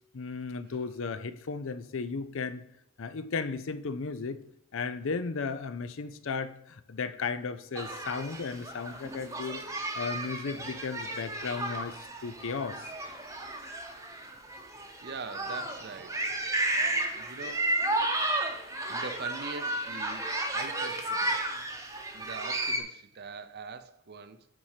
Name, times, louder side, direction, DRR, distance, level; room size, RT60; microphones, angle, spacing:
voice 1, 0.1-2.6 3.0-4.4 4.7-9.6 9.9-12.8, left 4 dB, 60° left, 0.5 m, -35 dB
sound 1, 7.8-22.8, right 1 dB, 15° right, 0.9 m, -33 dB
voice 2, 15.0-16.2 16.7-17.8 18.9-21.4 22.1-24.5, right 4 dB, 45° right, 0.6 m, -43 dB
8.8 x 4.2 x 4.9 m
head